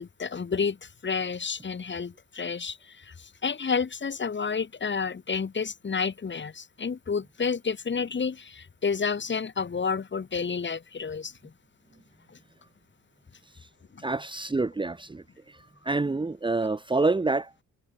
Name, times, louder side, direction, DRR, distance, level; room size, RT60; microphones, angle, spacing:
voice 1, 0.0-11.5 12.3-12.4 13.9-14.0, left 5 dB, 40° left, 7.3 m, -30 dB
voice 2, 14.0-15.2 15.8-17.6, right 3 dB, 15° right, 1.3 m, -27 dB
cardioid pair, 90°, 30 cm